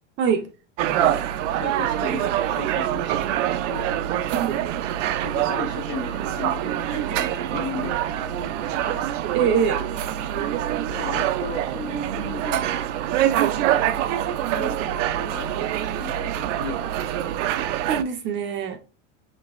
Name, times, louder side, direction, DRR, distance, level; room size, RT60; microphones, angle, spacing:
voice 1, 0.8-3.9 5.1-9.1 10.3-10.5 10.8-12.8 13.6-16.8, left 5 dB, 30° left, 0.6 m, -37 dB
sound 1, 0.8-18.0, right 11 dB, 80° right, 0.5 m, -25 dB
voice 2, 9.3-9.8 17.7-18.8, right 6 dB, 30° right, 0.5 m, -24 dB
5.1 x 2.6 x 2.4 m
supercardioid pair, 145°, 36 cm